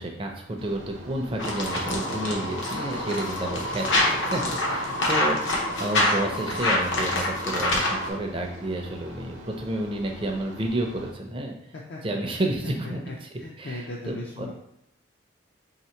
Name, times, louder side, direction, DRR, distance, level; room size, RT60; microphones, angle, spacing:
voice 1, 0.0-11.5 12.0-14.5, right 1 dB, 25° right, 2 dB, 0.5 m, -31 dB
sound 1, 0.6-11.1, equal, 90° right, 0.8 m, -44 dB
sound 2, 1.4-8.1, left 1 dB, 75° left, 0.8 m, -26 dB
voice 2, 12.8-14.5, left 2 dB, 55° left, -3 dB, 0.4 m, -38 dB
3.1 x 2.8 x 4.4 m, 0.78 s
head